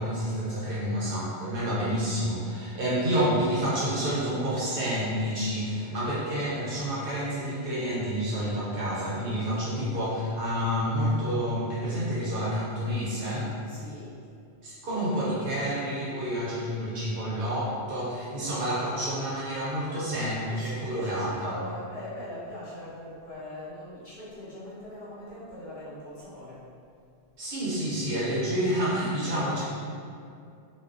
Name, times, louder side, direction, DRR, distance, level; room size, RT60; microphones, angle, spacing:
voice 1, 0.0-13.5 14.6-21.5 27.4-29.6, equal, 60° right, -8 dB, 0.7 m, -29 dB
voice 2, 13.7-14.2 19.9-26.7, left 1 dB, 60° left, -12 dB, 1.1 m, -41 dB
2.4 x 2.2 x 2.3 m, 2.4 s
omnidirectional pair, 1.1 m